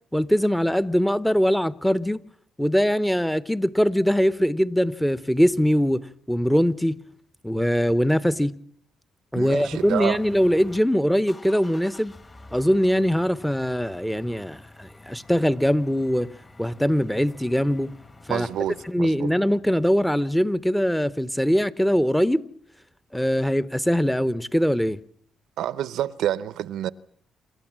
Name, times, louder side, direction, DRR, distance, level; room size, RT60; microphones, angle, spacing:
voice 1, 0.1-2.2 2.6-7.0 7.4-8.6 9.3-12.1 12.5-16.3 16.6-17.9 18.3-18.5 18.9-22.4 23.1-25.0, equal, 5° left, 0.9 m, -22 dB
voice 2, 9.3-10.2 18.3-19.3 25.6-26.9, right 11 dB, 80° right, 0.8 m, -28 dB
sound 1, 9.5-10.8 11.2-18.9, left 2 dB, 25° left, 2.0 m, -48 dB
27.5 x 13.0 x 7.5 m
cardioid pair, 90°, 0 cm